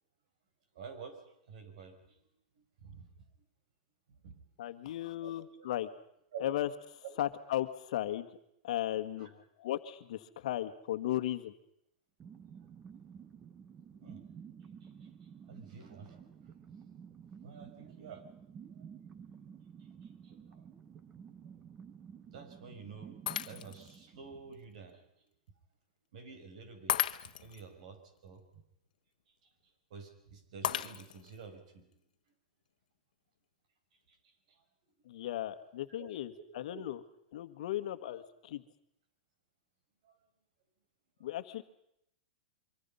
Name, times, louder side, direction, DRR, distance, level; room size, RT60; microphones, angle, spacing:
voice 1, 0.7-2.2 2.6-3.3 4.1-4.5 5.2-5.7 6.3-6.4 7.0-7.2 9.2-9.3 13.9-14.2 14.8-15.1 15.5-16.5 17.4-18.2 18.8-18.9 19.8-20.7 22.3-23.2 23.4-25.3 26.1-27.0 27.2-28.4 29.4-29.5 29.9-32.0 34.1-34.6 35.9-36.1 36.3-36.9 40.0-40.2, right 5 dB, 60° right, 7 dB, 5.5 m, -50 dB
voice 2, 4.6-5.9 6.4-8.3 8.6-11.5 35.0-37.0 37.3-38.6 41.2-41.6, left 13 dB, 60° left, 9 dB, 1.6 m, -36 dB
sound 1, 12.2-24.9, right 7 dB, 15° right, 1.0 m, -52 dB
Shatter, 23.3-24.0 24.5-24.6 26.9-27.6 30.6-31.4, left 10 dB, 80° left, 1.2 m, -35 dB
26.0 x 24.5 x 5.6 m, 0.76 s
supercardioid pair, 170°, 4 cm